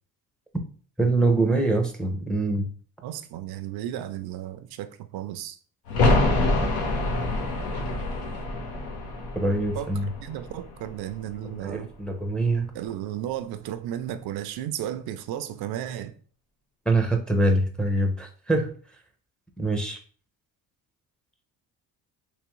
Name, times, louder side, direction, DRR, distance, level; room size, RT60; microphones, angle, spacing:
voice 1, 1.0-2.7 9.4-10.1 11.6-12.7 16.9-18.7 19.6-20.0, right 2 dB, ahead, 0.6 m, -24 dB
voice 2, 3.0-5.6 9.7-9.9 10.2-11.9 12.7-16.1, right 11 dB, 75° right, 0.5 m, -34 dB
sound 1, 5.9-11.4 11.7-11.8, left 2 dB, 75° left, 1.1 m, -26 dB
3.5 x 3.0 x 3.0 m
cardioid pair, 120°, 37 cm